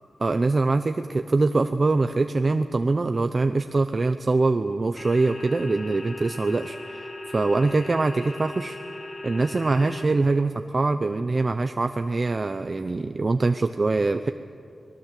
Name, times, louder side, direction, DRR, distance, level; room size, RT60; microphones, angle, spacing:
voice 1, 0.2-8.8 9.2-14.3, right 3 dB, 35° right, 8 dB, 0.6 m, -23 dB
sound 1, 5.0-10.0, left 1 dB, 65° left, 3.8 m, -38 dB
25.0 x 19.5 x 7.6 m, 2.4 s
wide cardioid pair, 135°, 0 cm